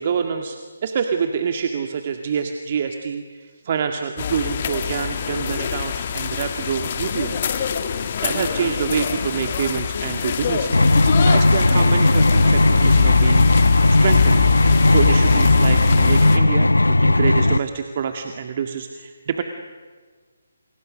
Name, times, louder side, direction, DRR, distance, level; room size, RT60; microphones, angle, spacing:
voice 1, 0.0-7.4 8.2-13.5 14.0-14.4 14.9-19.4, right 7 dB, 45° right, 6 dB, 2.0 m, -26 dB
sound 1, 4.2-16.4, left 8 dB, 40° left, 2.3 m, -24 dB
sound 2, 10.7-17.6, left 2 dB, 90° left, 0.7 m, -16 dB
30.0 x 29.5 x 6.5 m, 1.5 s
figure-of-eight pair, 150°, 0 cm